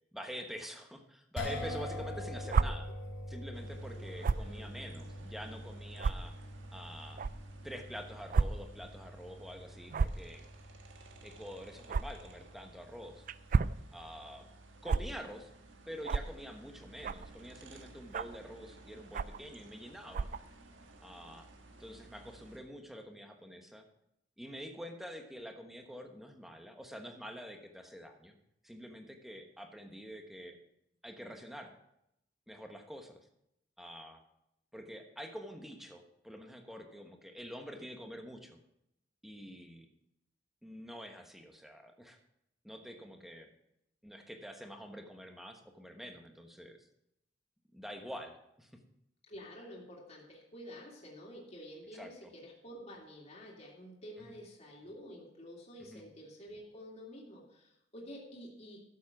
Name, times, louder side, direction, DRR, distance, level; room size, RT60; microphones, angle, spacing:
voice 1, 0.1-2.9 3.3-6.3 6.7-7.2 7.6-10.5 11.2-13.3 13.9-14.5 14.8-15.5 15.9-20.3 21.0-21.5 21.8-23.8 24.4-28.3 28.6-30.6 31.0-31.7 32.5-33.2 33.8-34.2 34.7-38.6 39.2-39.9 40.6-42.2 42.6-43.5 44.0-46.8 47.7-48.7 51.9-52.1 54.2-54.3 55.8-56.0, equal, ahead, 4 dB, 1.2 m, -47 dB
sound 1, 1.4-13.7, left 1 dB, 80° left, 3.0 m, -45 dB
sound 2, 2.5-2.7 4.2-4.5 5.2-5.3 6.0-6.1 7.2-7.3 8.3-8.5 8.8-8.9 9.9-10.2 11.9-12.0 13.3-13.8 14.9-15.0 16.0-16.3 17.0-17.3 18.1-18.4 19.1-19.4 20.1-20.4, right 4 dB, 45° right, 0.3 m, -29 dB
sound 3, 3.5-22.6, right 2 dB, 85° right, 1.5 m, -56 dB
voice 2, 4.0-5.0 49.3-58.8, equal, 35° left, -3 dB, 2.5 m, -50 dB
12.0 x 7.4 x 5.9 m, 0.81 s
head